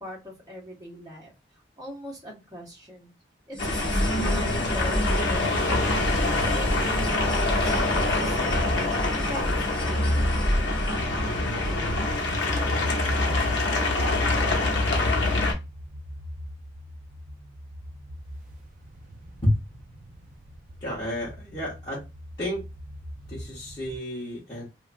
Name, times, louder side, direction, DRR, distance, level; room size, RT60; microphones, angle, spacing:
voice 1, 0.0-3.1 3.5-8.7 9.1-11.2 11.7-12.0 12.5-12.7 14.0-14.6 14.9-15.2, equal, 20° right, -4 dB, 1.0 m, -42 dB
sound 1, 3.5-12.2, equal, 5° left, 0.5 m, -30 dB
sound 2, 3.6-15.5, left 2 dB, 85° left, 0.8 m, -25 dB
sound 3, 7.4-24.0, equal, 45° right, 0.4 m, -43 dB
voice 2, 20.8-22.0 22.4-22.6 23.3-24.6, left 1 dB, 25° left, -8 dB, 1.0 m, -29 dB
2.7 x 2.3 x 2.5 m, 0.25 s
head